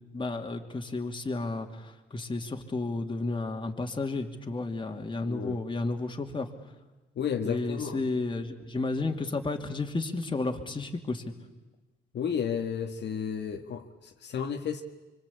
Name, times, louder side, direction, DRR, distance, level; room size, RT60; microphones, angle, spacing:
voice 1, 0.1-6.5 7.4-11.2, left 3 dB, 25° left, 4 dB, 2.7 m, -32 dB
voice 2, 5.2-5.6 7.2-8.0 12.1-14.8, left 7 dB, 60° left, 3 dB, 1.9 m, -32 dB
25.5 x 24.5 x 8.6 m, 1.1 s
cardioid pair, 90°, 20 cm